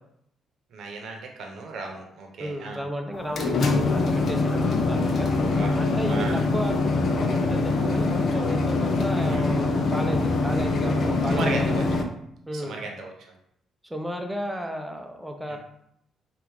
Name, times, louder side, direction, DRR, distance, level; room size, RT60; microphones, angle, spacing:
voice 1, 0.7-2.8 5.4-5.8 6.1-6.4 9.3-9.5 11.3-11.8 12.5-13.1 15.5-15.6, right 3 dB, 70° right, 2 dB, 0.9 m, -35 dB
voice 2, 2.4-5.3 5.8-11.8 12.5-12.8 13.8-15.6, equal, 5° right, 3 dB, 0.6 m, -33 dB
sound 1, 3.1-12.0, left 3 dB, 60° left, 0.5 m, -24 dB
4.5 x 2.5 x 3.5 m, 0.74 s
cardioid pair, 90°, 0 cm